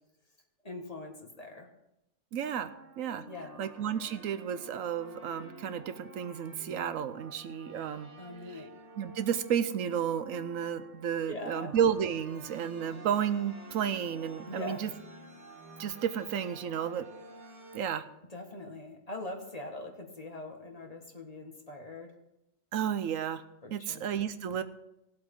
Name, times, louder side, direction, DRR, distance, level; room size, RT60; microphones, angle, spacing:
voice 1, 0.6-1.7 3.3-3.6 8.2-8.7 11.3-11.7 14.5-14.8 18.3-22.1 23.6-24.1, left 2 dB, 30° left, 2 dB, 1.6 m, -42 dB
voice 2, 2.3-2.7 3.0-3.2 3.6-8.1 9.0-14.9 15.8-17.1 17.7-18.0 22.7-23.4 23.7-24.6, right 8 dB, 90° right, 11 dB, 1.1 m, -32 dB
sound 1, 2.4-17.8, right 1 dB, 65° right, 2.2 m, -50 dB
18.5 x 7.8 x 3.7 m, 0.87 s
omnidirectional pair, 1.3 m